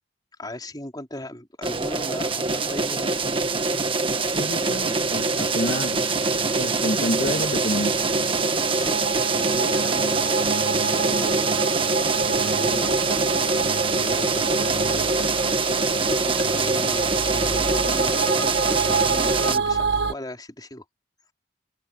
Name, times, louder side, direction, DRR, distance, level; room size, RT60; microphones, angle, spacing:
voice 1, 0.4-3.3 8.7-9.0 9.3-11.6 12.4-13.5 13.9-15.3 16.0-20.8, left 1 dB, 20° left, 4.3 m, -37 dB
sound 1, 1.6-19.6, right 3 dB, 30° right, 1.5 m, -24 dB
voice 2, 4.3-6.0 6.3-8.0, left 1 dB, 55° left, 2.3 m, -28 dB
sound 2, 5.3-20.1, right 4 dB, 65° right, 1.5 m, -29 dB
head